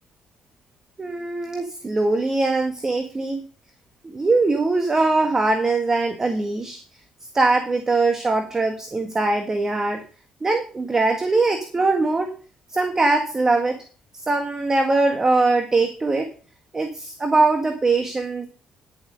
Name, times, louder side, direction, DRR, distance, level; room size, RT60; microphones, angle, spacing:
voice 1, 1.0-3.4 4.0-6.8 7.3-10.0 10.4-12.4 12.7-13.8 14.2-16.3 16.7-18.5, right 3 dB, 25° right, 6 dB, 1.7 m, -21 dB
11.5 x 7.3 x 5.0 m, 0.37 s
cardioid pair, 90°, 2 cm